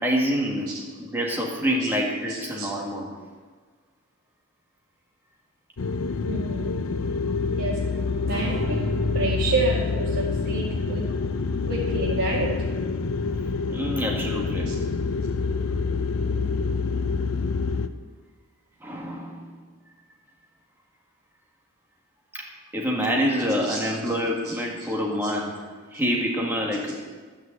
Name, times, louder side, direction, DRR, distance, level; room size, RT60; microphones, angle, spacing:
voice 1, 0.0-0.7 1.0-3.1 13.7-14.7 18.8-19.5 22.3-22.4 22.7-27.0, equal, 10° right, -2 dB, 1.9 m, -26 dB
voice 2, 2.3-2.7 6.3-6.9 7.6-7.8 8.2-8.9 9.1-10.1 10.4-10.6 10.9-11.0 11.7-12.5 14.7-14.8 23.6-23.9 24.4-24.5 25.2-25.3, right 2 dB, 90° right, -7 dB, 2.2 m, -28 dB
sound 1, 5.8-17.9, left 4 dB, 80° left, 0.6 m, -27 dB
Strum, 8.3-14.7, equal, 65° right, 4.0 m, -37 dB
12.0 x 6.4 x 7.9 m, 1.5 s
head